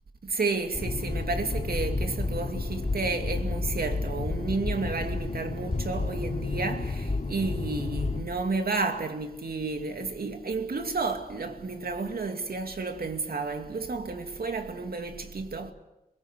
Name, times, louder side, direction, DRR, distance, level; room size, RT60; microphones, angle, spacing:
voice 1, 0.2-15.7, right 3 dB, 75° right, 2.7 m, -31 dB
sound 1, 0.7-8.2, left 3 dB, 45° left, 3.5 m, -31 dB
23.0 x 22.0 x 8.2 m
cardioid pair, 60°, 16 cm